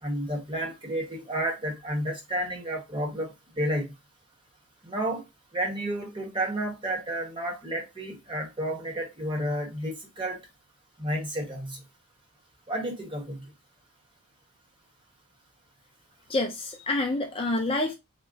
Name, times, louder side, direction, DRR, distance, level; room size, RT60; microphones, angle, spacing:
voice 1, 0.0-3.9 4.8-5.3 5.5-10.4 11.0-11.8 12.7-13.5, right 1 dB, 25° right, 1.1 m, -31 dB
voice 2, 16.3-17.9, left 2 dB, 25° left, 0.4 m, -27 dB
3.6 x 2.1 x 3.8 m
head